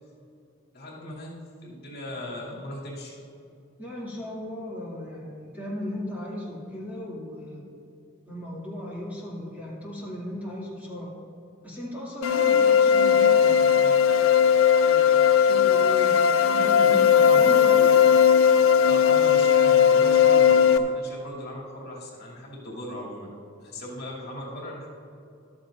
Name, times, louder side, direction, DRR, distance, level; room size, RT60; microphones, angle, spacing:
voice 1, 0.7-3.2 16.8-17.4 18.8-23.3 23.6-24.9, left 1 dB, 50° left, -4 dB, 2.7 m, -38 dB
voice 2, 3.8-7.6 8.3-11.1 11.6-13.9 14.9-17.9, left 1 dB, 10° right, -7 dB, 2.4 m, -36 dB
sound 1, 12.2-20.8, left 7 dB, 85° left, 0.6 m, -18 dB
14.5 x 12.5 x 2.6 m, 2.7 s
head